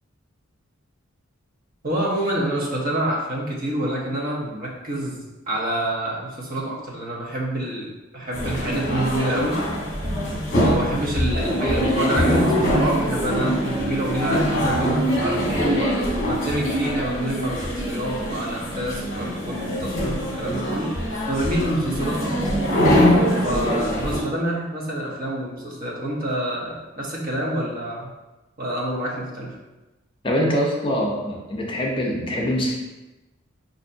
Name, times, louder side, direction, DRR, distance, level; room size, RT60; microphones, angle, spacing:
voice 1, 1.8-9.6 10.6-21.0 21.3-22.6 23.4-28.1 28.6-29.5, right 1 dB, 45° right, -3 dB, 0.8 m, -27 dB
sound 1, 8.3-24.2, equal, 45° left, 1.0 m, -23 dB
voice 2, 30.2-32.8, equal, 25° left, -1 dB, 0.5 m, -24 dB
5.5 x 2.6 x 2.6 m, 1.1 s
head